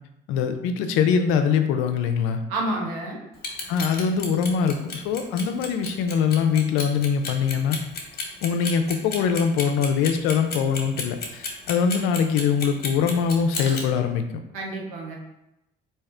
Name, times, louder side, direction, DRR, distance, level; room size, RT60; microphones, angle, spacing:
voice 1, 0.3-2.4 3.7-7.8 8.4-14.2, left 6 dB, 80° left, 7 dB, 0.5 m, -23 dB
voice 2, 2.5-3.2 14.5-15.2, right 1 dB, 85° right, -2 dB, 1.0 m, -29 dB
Clock, 3.3-13.8, left 4 dB, 50° left, 1.0 m, -32 dB
3.5 x 2.8 x 3.3 m, 0.90 s
supercardioid pair, 75°, 20 cm